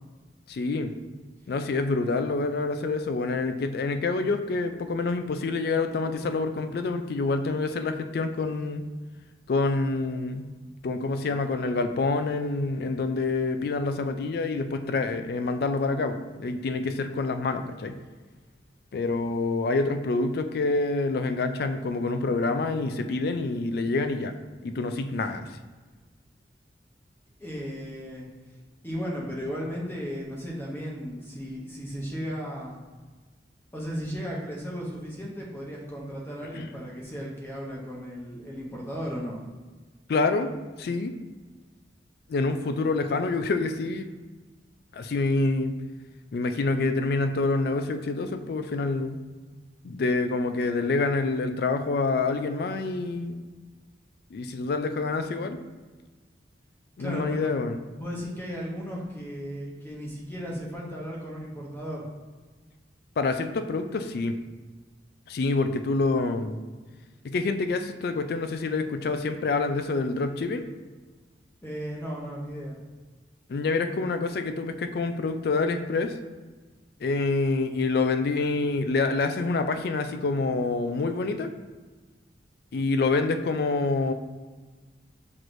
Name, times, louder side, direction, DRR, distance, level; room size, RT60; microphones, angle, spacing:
voice 1, 0.5-0.9 1.5-8.8 9.5-10.5 10.8-18.0 18.9-24.3 24.6-25.5 36.5-36.7 40.1-40.5 40.8-41.1 42.3-44.1 44.9-45.8 46.3-49.2 49.8-53.4 54.3-55.6 57.0-57.8 63.2-64.3 65.3-66.6 67.2-70.6 73.5-76.2 77.0-81.5 82.7-84.1, left 3 dB, 55° left, 8 dB, 0.3 m, -27 dB
voice 2, 27.4-28.3 28.8-32.8 33.7-39.4 57.0-57.5 58.0-62.1 71.6-72.8, equal, 15° left, -3 dB, 0.8 m, -35 dB
5.9 x 3.1 x 2.6 m, 1.3 s
head